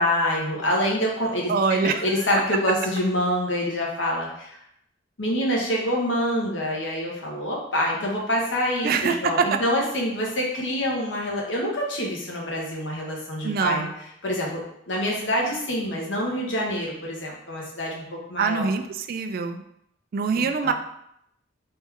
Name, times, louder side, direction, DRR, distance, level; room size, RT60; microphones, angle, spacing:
voice 1, 0.0-4.6 5.2-13.9 14.2-18.0 18.3-18.7 20.3-20.7, equal, 75° left, -2 dB, 1.0 m, -26 dB
voice 2, 1.5-2.1 8.8-9.6 13.4-13.9 18.4-19.6 20.1-20.7, right 5 dB, 50° right, 7 dB, 0.3 m, -24 dB
3.2 x 3.1 x 3.5 m, 0.75 s
head